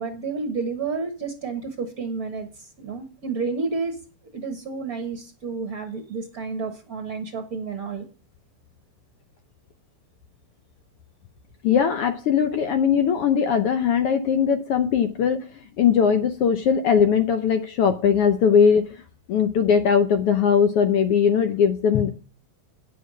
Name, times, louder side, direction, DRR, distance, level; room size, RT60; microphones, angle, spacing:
voice 1, 0.0-4.0 4.3-8.0, right 4 dB, 50° right, 5 dB, 1.1 m, -30 dB
voice 2, 11.6-15.5 15.8-18.9 19.3-22.1, left 7 dB, 75° left, 9 dB, 1.3 m, -20 dB
9.4 x 7.1 x 6.1 m, 0.37 s
omnidirectional pair, 3.4 m